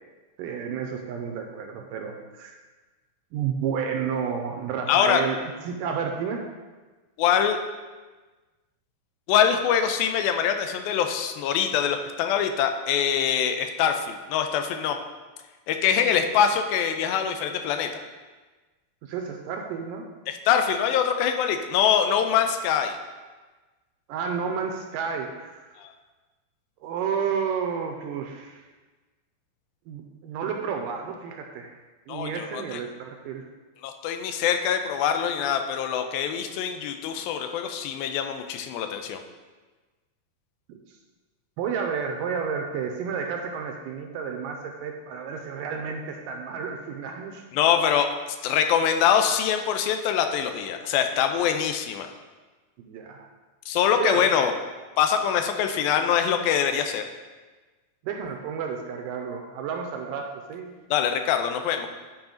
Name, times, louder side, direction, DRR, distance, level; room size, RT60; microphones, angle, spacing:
voice 1, 0.4-2.5 3.3-5.4 5.6-6.4 19.0-20.1 24.1-25.7 26.8-28.7 29.9-31.7 32.1-33.5 40.7-40.8 41.6-47.4 52.8-53.3 54.0-54.3 58.0-60.7, right 6 dB, 80° right, 3 dB, 2.1 m, -31 dB
voice 2, 4.9-5.2 7.2-7.6 9.3-15.0 15.7-18.0 20.3-23.0 25.8-25.9 32.1-32.8 33.8-39.2 47.5-48.1 48.4-52.1 53.7-54.5 55.0-57.0 60.9-61.9, left 8 dB, 90° left, 6 dB, 2.4 m, -24 dB
10.5 x 4.8 x 3.8 m, 1.3 s
omnidirectional pair, 4.2 m